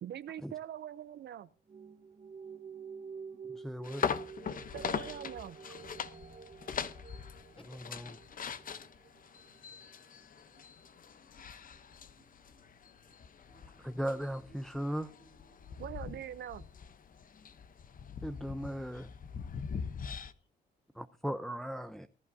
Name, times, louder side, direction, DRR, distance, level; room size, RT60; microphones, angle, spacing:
voice 1, 0.0-1.5 4.7-5.6 15.8-16.6, right 10 dB, 60° right, 0.6 m, -43 dB
sound 1, 1.7-16.3, right 6 dB, 40° right, 1.4 m, -52 dB
voice 2, 3.5-4.1 7.9-8.0 13.8-15.1 18.2-19.1 21.0-22.1, equal, ahead, 0.6 m, -37 dB
sound 2, 3.8-20.3, left 7 dB, 45° left, 0.9 m, -42 dB
voice 3, 7.2-7.9 13.5-13.8 20.0-20.5, left 2 dB, 25° left, 4.2 m, -67 dB
20.0 x 11.0 x 2.7 m
cardioid pair, 90°, 20 cm